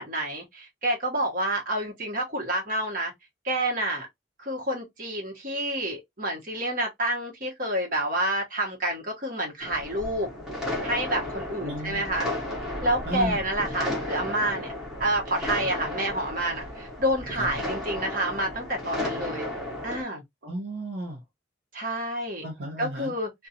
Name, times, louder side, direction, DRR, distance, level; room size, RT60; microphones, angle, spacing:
voice 1, 0.0-3.1 3.4-4.1 4.4-10.3 10.8-12.3 12.8-14.7 15.0-19.5 19.8-20.2 21.7-22.4 22.8-23.5, right 1 dB, 45° right, 1.0 m, -28 dB
sound 1, 9.6-20.0, left 1 dB, 5° right, 0.9 m, -34 dB
voice 2, 11.6-12.0 13.1-13.4 17.4-17.5 20.4-21.2 22.4-23.1, right 1 dB, 65° right, 0.7 m, -33 dB
2.4 x 2.2 x 2.8 m
head